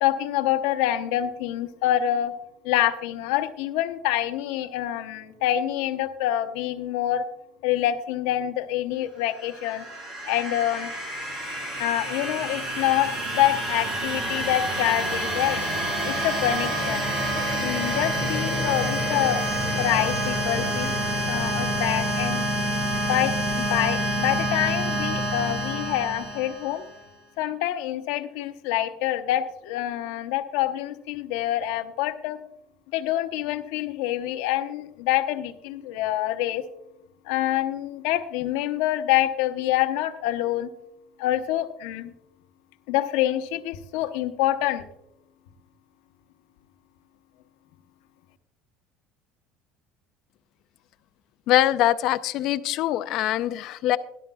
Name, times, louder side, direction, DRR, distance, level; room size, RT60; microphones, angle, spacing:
voice 1, 0.0-2.3 2.6-7.3 7.6-9.8 10.3-10.9 11.8-15.6 16.1-17.1 17.6-19.5 19.8-20.9 21.3-22.4 23.1-26.8 27.4-32.4 32.9-36.6 37.2-40.7 41.2-42.1 42.9-44.9, left 13 dB, 80° left, 9 dB, 0.9 m, -26 dB
sound 1, 9.3-27.0, right 1 dB, 30° right, 3.4 m, -28 dB
voice 2, 51.5-54.0, left 14 dB, 50° left, 13 dB, 0.4 m, -23 dB
17.0 x 11.5 x 2.3 m, 0.82 s
cardioid pair, 170°, 0 cm